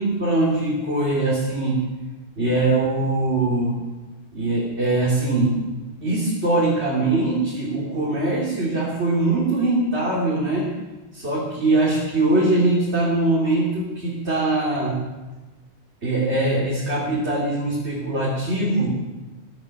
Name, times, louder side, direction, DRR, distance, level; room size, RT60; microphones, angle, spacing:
voice 1, 0.0-1.9 2.4-3.8 4.3-5.6 6.0-10.7 11.1-15.0 16.0-19.0, right 2 dB, 80° right, -5 dB, 3.5 m, -22 dB
24.0 x 9.0 x 6.7 m, 1.2 s
omnidirectional pair, 1.1 m